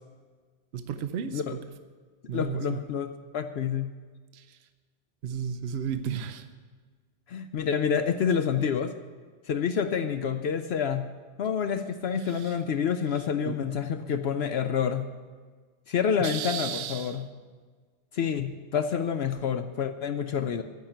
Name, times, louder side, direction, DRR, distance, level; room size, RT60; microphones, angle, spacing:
voice 1, 0.7-1.6 2.3-2.8 4.3-4.6 5.2-6.5 12.2-12.6 13.1-13.6 16.2-17.2, right 8 dB, 65° right, 9 dB, 0.9 m, -34 dB
voice 2, 2.3-3.1 3.3-3.9 7.3-8.9 9.5-11.1 11.4-15.1 15.9-17.2 18.1-20.6, left 7 dB, 65° left, 8 dB, 0.8 m, -28 dB
14.5 x 5.8 x 9.1 m, 1.5 s
omnidirectional pair, 1.2 m